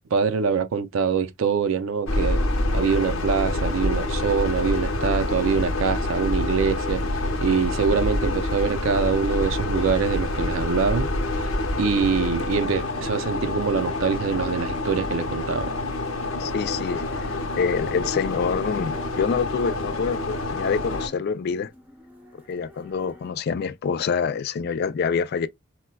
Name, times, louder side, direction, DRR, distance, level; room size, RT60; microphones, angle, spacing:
voice 1, 0.1-2.4 2.7-7.0 7.4-11.5 11.8-15.8, right 5 dB, 70° right, 0.5 m, -24 dB
sound 1, 2.1-21.1, left 2 dB, 90° left, 0.8 m, -27 dB
sound 2, 3.6-23.3, left 1 dB, 10° right, 0.7 m, -47 dB
voice 2, 16.4-17.0 17.6-21.7 22.3-25.5, left 6 dB, 50° left, 0.3 m, -26 dB
4.3 x 2.2 x 2.2 m
head